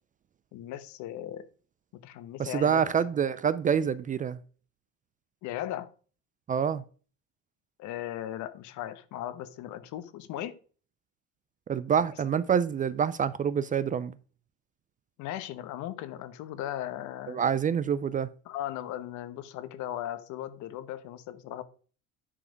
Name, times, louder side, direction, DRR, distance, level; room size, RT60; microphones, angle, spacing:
voice 1, 0.5-1.5 2.0-2.8 5.4-5.9 7.8-10.6 15.2-17.4 18.4-21.6, left 12 dB, 65° left, 1.1 m, -37 dB
voice 2, 2.4-4.4 6.5-6.8 11.7-14.1 17.3-18.3, right 7 dB, 25° right, 0.4 m, -26 dB
9.9 x 4.9 x 5.1 m
cardioid pair, 115°, 32 cm